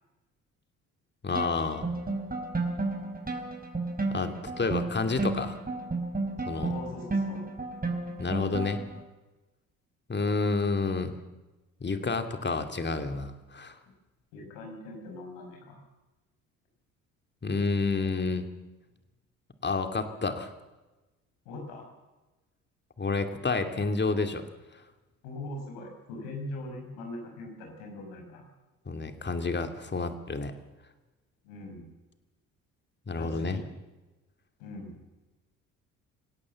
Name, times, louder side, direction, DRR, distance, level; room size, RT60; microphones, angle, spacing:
voice 1, 1.2-1.9 4.1-5.6 6.5-6.7 8.2-8.8 10.1-11.1 11.8-13.7 17.4-18.5 19.6-20.5 23.0-24.4 28.9-30.5 33.1-33.6, left 3 dB, 25° left, 8 dB, 2.7 m, -29 dB
sound 1, 1.3-9.0, right 3 dB, 20° right, 4.6 m, -33 dB
voice 2, 6.6-7.4 14.3-15.8 21.4-21.9 25.2-28.4 31.4-31.8 33.1-33.6 34.6-35.0, left 2 dB, 70° left, 3 dB, 6.0 m, -41 dB
25.5 x 17.0 x 7.1 m, 1.1 s
figure-of-eight pair, 50°, 41 cm